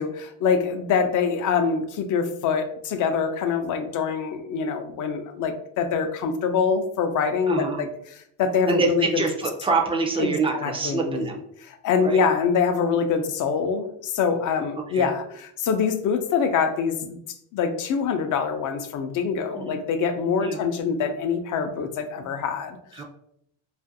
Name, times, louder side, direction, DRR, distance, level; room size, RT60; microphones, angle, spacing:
voice 1, 0.0-7.9 8.4-9.2 10.2-11.2 11.8-17.2 17.5-23.0, left 6 dB, 50° left, 7 dB, 0.5 m, -25 dB
voice 2, 7.5-7.8 8.7-11.4 12.0-12.2 14.9-15.1 19.5-19.8 20.4-20.6 22.9-23.0, right 3 dB, 15° right, 2 dB, 0.3 m, -25 dB
2.5 x 2.5 x 2.6 m, 0.72 s
cardioid pair, 110°, 41 cm